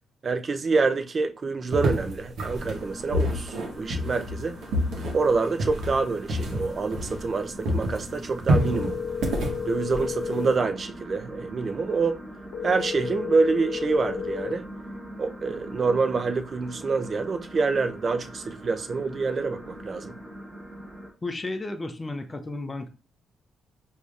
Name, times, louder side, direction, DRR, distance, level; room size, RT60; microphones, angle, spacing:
voice 1, 0.2-4.6 5.1-9.0 9.7-12.2 12.6-14.6 15.2-20.1, right 4 dB, 40° right, 0.4 m, -26 dB
sound 1, 1.7-7.4 7.6-10.6, equal, 75° right, 1.0 m, -28 dB
sound 2, 2.5-21.1, equal, 15° right, 1.2 m, -42 dB
sound 3, 8.5-10.5 12.5-14.5, left 6 dB, 75° left, 0.8 m, -32 dB
voice 2, 21.2-22.9, left 2 dB, 20° left, 0.7 m, -33 dB
4.9 x 2.7 x 2.4 m
cardioid pair, 90°, 0 cm